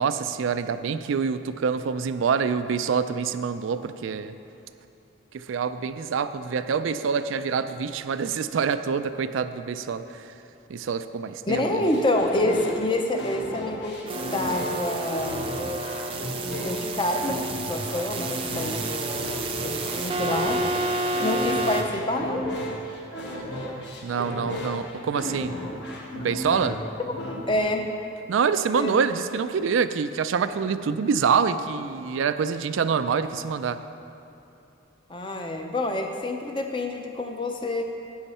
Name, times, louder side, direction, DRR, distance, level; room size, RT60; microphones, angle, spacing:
voice 1, 0.0-4.3 5.3-10.2 10.7-12.0 24.0-25.5 26.2-26.8 28.3-33.8, right 6 dB, 75° right, 11 dB, 0.4 m, -26 dB
sound 1, 11.5-27.6, left 1 dB, 55° left, 1.2 m, -34 dB
voice 2, 11.5-15.5 16.4-20.6 21.2-22.5 27.5-27.9 28.7-29.0 35.1-37.8, left 1 dB, 25° left, 4 dB, 0.6 m, -27 dB
sound 2, 14.1-21.8, right 2 dB, 25° right, 0.5 m, -30 dB
10.5 x 8.1 x 4.3 m, 2.9 s
head